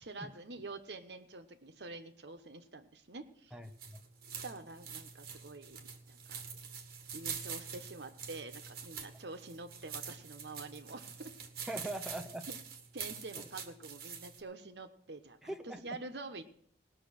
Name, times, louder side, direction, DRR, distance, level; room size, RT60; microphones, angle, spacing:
voice 1, 0.0-3.5 4.4-5.8 6.1-6.4 7.1-11.3 11.6-11.7 12.5-12.6 12.9-15.6 15.8-16.4, right 3 dB, 70° right, 8 dB, 1.1 m, -47 dB
voice 2, 3.5-4.0 11.7-12.5 15.4-15.8, right 1 dB, 5° right, 5 dB, 0.6 m, -41 dB
sound 1, 3.6-14.4, right 6 dB, 55° right, 1.6 m, -45 dB
18.5 x 6.5 x 6.5 m, 0.62 s
head